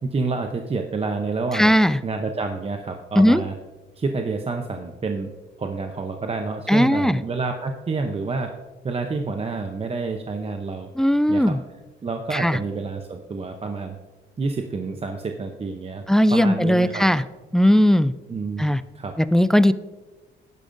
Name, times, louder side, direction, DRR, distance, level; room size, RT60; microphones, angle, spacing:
voice 1, 0.0-1.7 2.0-3.5 4.0-5.3 5.6-8.5 8.8-10.9 11.3-11.6 12.0-14.0 14.4-16.0 16.3-17.1 18.3-18.7 18.9-19.1, right 4 dB, 30° right, 5 dB, 0.7 m, -28 dB
voice 2, 1.5-2.0 3.2-3.4 6.7-7.2 11.0-11.6 12.3-12.6 16.1-17.2 17.5-18.1 18.6-18.8 19.2-19.7, equal, 5° left, 15 dB, 0.3 m, -18 dB
10.5 x 10.5 x 2.6 m, 1.2 s
cardioid pair, 90°, 20 cm